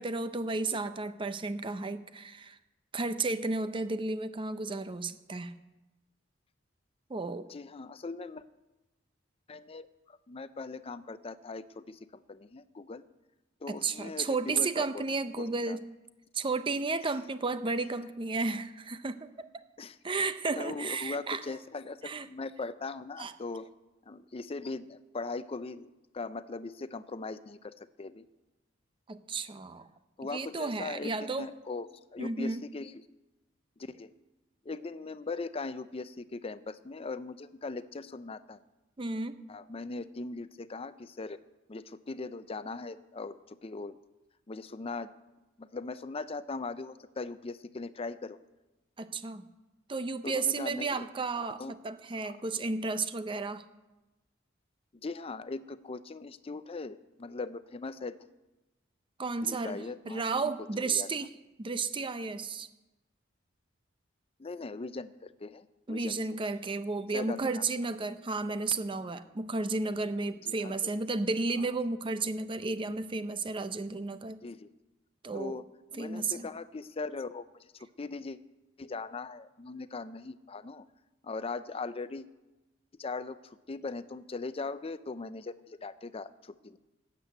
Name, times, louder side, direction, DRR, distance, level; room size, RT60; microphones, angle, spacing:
voice 1, 0.0-2.6 2.9-5.5 7.1-7.5 13.7-15.8 16.3-19.5 20.0-21.6 22.0-22.3 23.2-23.3 29.1-29.9 30.3-31.5 32.2-32.6 39.0-39.4 49.0-49.5 49.9-53.6 59.2-62.7 65.9-74.4 75.2-75.6 76.0-76.5, right 3 dB, 25° right, 11 dB, 0.6 m, -33 dB
voice 2, 7.5-8.4 9.5-13.0 13.6-15.0 15.4-15.8 19.8-20.0 20.5-23.7 24.1-28.3 30.2-33.0 33.8-34.1 34.7-38.6 39.5-41.4 41.7-44.0 44.5-45.1 45.6-48.4 50.2-51.1 51.4-51.7 52.2-52.4 55.0-58.2 59.4-60.5 60.8-61.1 64.4-66.2 67.1-67.4 70.4-70.9 74.4-74.7 75.3-75.6 75.9-77.7 78.0-78.4 78.8-80.8 81.2-82.3 83.0-86.8, left 3 dB, 30° left, 13 dB, 0.5 m, -40 dB
12.5 x 8.3 x 8.0 m, 1.0 s
head